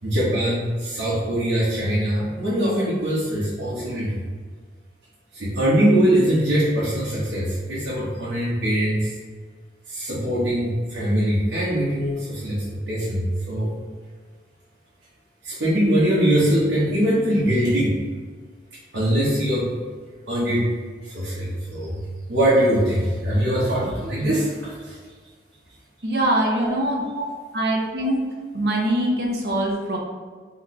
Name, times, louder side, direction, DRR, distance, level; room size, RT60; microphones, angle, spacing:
voice 1, 0.0-4.2 5.3-9.1 9.9-13.7 15.4-17.9 18.9-19.7 20.3-20.7 21.0-25.0 26.6-26.7 27.1-27.3 28.0-28.1, right 1 dB, 80° right, -9 dB, 1.1 m, -22 dB
voice 2, 26.0-27.0 27.5-28.3 28.5-30.0, right 1 dB, 60° right, 0 dB, 0.8 m, -23 dB
4.2 x 3.2 x 3.1 m, 1.6 s
head